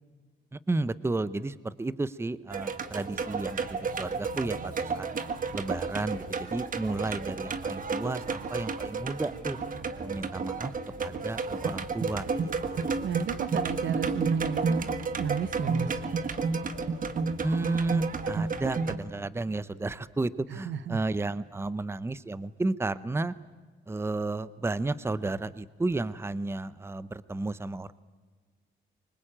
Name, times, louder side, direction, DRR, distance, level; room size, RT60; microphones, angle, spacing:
voice 1, 0.5-5.1 5.5-9.6 10.0-10.7 11.0-12.9 17.4-23.3 23.9-27.9, right 2 dB, 10° right, 17 dB, 0.8 m, -32 dB
sound 1, 2.5-19.0, right 4 dB, 45° right, 1.6 m, -31 dB
voice 2, 13.0-14.9 15.2-16.0 20.5-21.0, right 8 dB, 70° right, 15 dB, 1.2 m, -33 dB
24.5 x 20.5 x 8.9 m, 1.4 s
cardioid pair, 90°, 20 cm